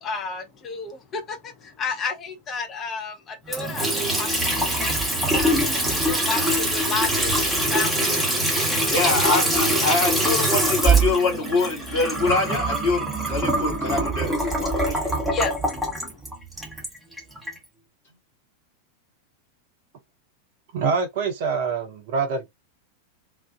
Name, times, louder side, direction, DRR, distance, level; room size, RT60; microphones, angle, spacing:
voice 1, 0.0-1.4 1.8-4.9 5.3-8.2 9.0-9.7 15.3-15.5, left 4 dB, 25° left, 0.6 m, -31 dB
Water tap faucet / Sink (filling or washing) / Trickle dribble, 3.5-17.6, right 1 dB, 5° right, 0.9 m, -23 dB
voice 2, 8.9-15.2, left 3 dB, 65° left, 1.4 m, -25 dB
voice 3, 20.7-22.5, right 5 dB, 50° right, 0.6 m, -25 dB
2.4 x 2.4 x 2.2 m
figure-of-eight pair, 90°, 0 cm